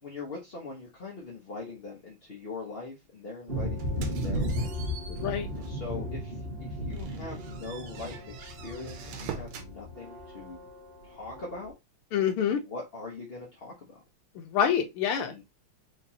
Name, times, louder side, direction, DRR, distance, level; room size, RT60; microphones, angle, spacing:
voice 1, 0.0-4.7 5.6-10.7 11.0-11.7 12.6-13.9 15.2-15.4, left 3 dB, 40° left, 0.8 m, -42 dB
sound 1, 3.5-11.7, equal, 35° right, 1.0 m, -35 dB
sound 2, 3.8-5.9 6.3-6.5 6.9-9.7, right 6 dB, 80° right, 1.7 m, -44 dB
voice 2, 5.1-5.5 12.1-12.6 14.3-15.4, left 8 dB, 80° left, 1.7 m, -27 dB
4.9 x 3.3 x 2.8 m
omnidirectional pair, 2.4 m